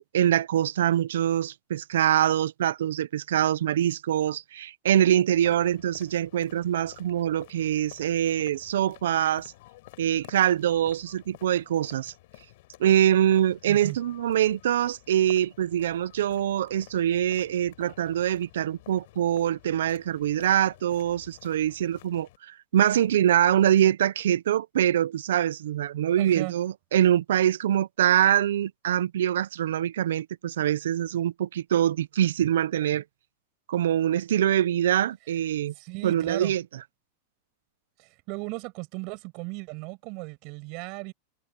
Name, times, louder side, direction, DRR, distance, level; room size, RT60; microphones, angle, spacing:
voice 1, 0.1-9.5 10.0-12.1 12.8-33.0 33.7-35.7 36.0-36.6, right 11 dB, 85° right, 0.7 m, -24 dB
sound 1, 5.3-22.4, left 19 dB, 65° left, 4.3 m, -52 dB
voice 2, 26.2-26.5 35.8-36.5 38.0-41.1, right 29 dB, 50° right, 6.3 m, -36 dB
supercardioid pair, 135°, 0 cm